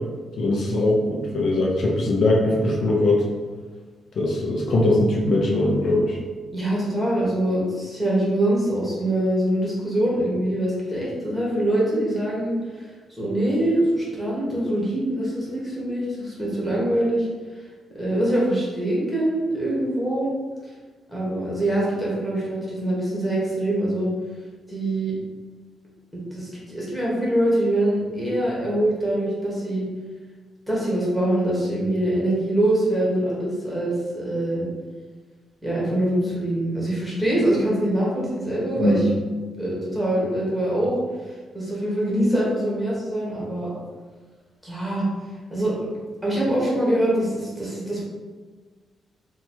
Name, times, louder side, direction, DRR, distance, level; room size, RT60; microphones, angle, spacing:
voice 1, 0.4-3.2 4.2-6.2 38.8-39.1, left 1 dB, 60° left, -2 dB, 0.5 m, -21 dB
voice 2, 6.5-17.3 17.9-20.3 21.1-24.1 24.7-25.2 26.3-29.8 30.7-34.6 35.6-39.0 39.6-40.9 41.2-43.7 44.6-45.0 45.5-45.7 46.2-48.0, right 1 dB, ahead, -6 dB, 1.1 m, -24 dB
3.0 x 2.3 x 4.3 m, 1.4 s
cardioid pair, 140°, 0 cm